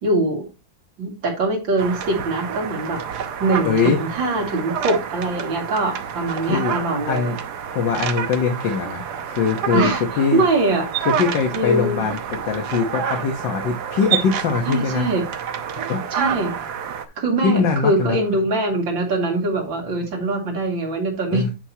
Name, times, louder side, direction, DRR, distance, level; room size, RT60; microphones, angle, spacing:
voice 1, 0.0-0.4 1.0-3.0 3.4-7.4 9.7-10.9 11.5-12.1 14.6-15.2 16.1-16.5 17.2-21.5, right 2 dB, 80° right, 1 dB, 3.0 m, -23 dB
sound 1, 1.8-17.1, right 8 dB, 65° right, 1.4 m, -28 dB
voice 2, 3.6-4.0 6.4-6.8 7.1-7.4 7.7-10.5 11.0-15.1 15.9-16.0 17.4-18.2 21.3-21.5, left 5 dB, 75° left, 2 dB, 1.8 m, -22 dB
9.7 x 5.8 x 2.8 m, 0.28 s
omnidirectional pair, 2.0 m